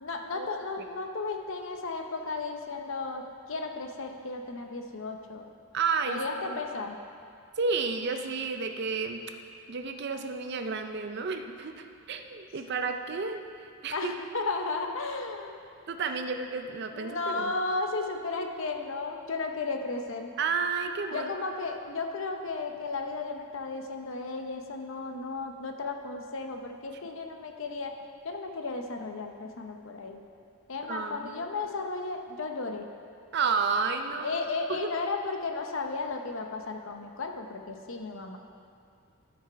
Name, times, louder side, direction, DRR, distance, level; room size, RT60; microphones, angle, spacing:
voice 1, 0.0-5.5 6.1-7.0 13.9-15.6 16.2-16.3 16.9-20.3 21.1-27.9 28.2-30.2 30.7-32.9 34.2-38.4, left 3 dB, 60° left, 4 dB, 0.7 m, -34 dB
voice 2, 5.7-6.6 7.6-9.2 9.7-14.1 15.9-17.5 20.4-21.3 30.9-31.5 33.3-34.4 34.7-35.0, right 5 dB, 50° right, 6 dB, 0.5 m, -31 dB
12.0 x 6.0 x 4.6 m, 2.4 s
head